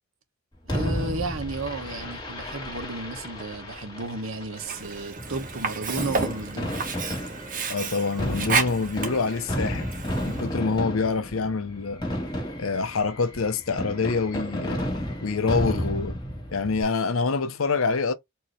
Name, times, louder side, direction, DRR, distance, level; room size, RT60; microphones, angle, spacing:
voice 1, 0.6-6.8, right 2 dB, 75° right, 1.2 m, -33 dB
Fireworks, 0.7-16.8, equal, 20° left, 1.7 m, -33 dB
Sink (filling or washing), 4.6-10.5, right 4 dB, 40° right, 1.1 m, -31 dB
voice 2, 7.7-9.9 10.2-12.0 12.6-14.8 15.2-16.2 16.5-18.1, left 4 dB, 80° left, 0.7 m, -26 dB
4.6 x 2.9 x 3.1 m
head